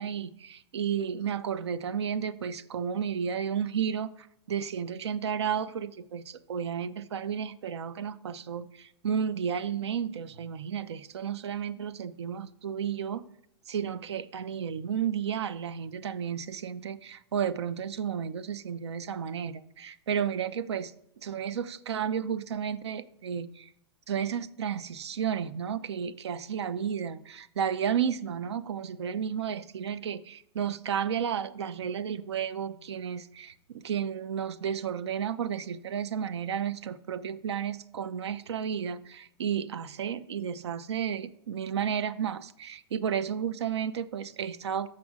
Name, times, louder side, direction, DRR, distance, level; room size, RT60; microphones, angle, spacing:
voice 1, 0.0-13.3 13.7-20.9 21.2-23.7 24.1-44.9, right 8 dB, 90° right, 0.4 m, -32 dB
6.3 x 5.8 x 3.7 m
hypercardioid pair, 110°, 14 cm